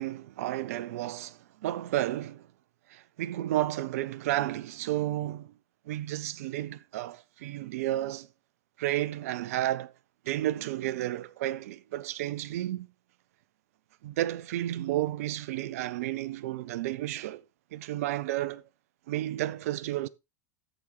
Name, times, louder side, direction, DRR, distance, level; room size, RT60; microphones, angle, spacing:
voice 1, 0.0-2.5 2.9-5.5 5.9-8.3 8.8-9.9 10.2-12.9 14.0-17.4 17.7-18.6 19.1-20.1, right 14 dB, 65° right, 0.5 m, -32 dB
13.5 x 5.0 x 3.3 m
figure-of-eight pair, 85°, 9 cm